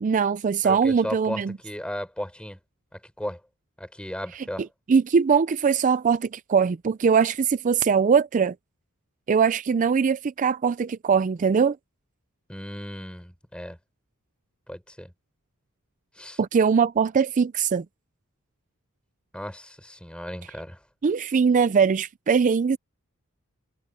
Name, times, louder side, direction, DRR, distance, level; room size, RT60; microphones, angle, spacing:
voice 1, 0.0-1.6 4.3-4.5 4.9-8.5 9.3-11.8 16.4-17.8 21.0-22.8, right 6 dB, 35° right, 0.4 m, -21 dB
voice 2, 0.6-2.6 2.9-3.4 3.8-4.6 12.5-13.8 14.7-15.1 16.2-16.4 19.3-20.8, equal, 5° left, 6.5 m, -35 dB
head